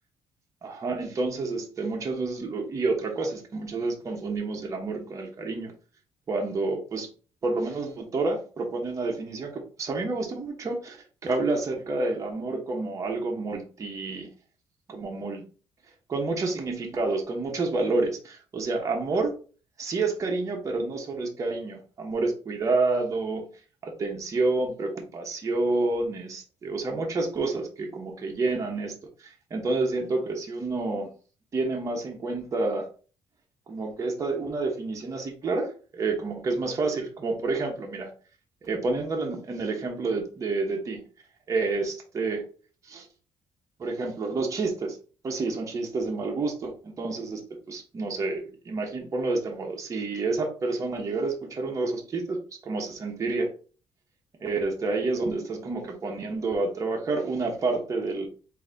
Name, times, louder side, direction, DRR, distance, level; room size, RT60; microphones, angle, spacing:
voice 1, 0.6-5.7 6.3-7.1 7.4-11.0 11.2-14.3 14.9-15.5 16.1-19.3 19.8-23.5 23.8-31.1 31.5-32.9 33.7-38.1 38.6-41.0 41.5-42.4 42.8-43.1 43.8-45.0 45.2-47.4 47.7-53.5 54.4-58.3, right 3 dB, 35° right, 0 dB, 1.0 m, -29 dB
3.8 x 2.7 x 3.9 m, 0.38 s
cardioid pair, 125°, 10 cm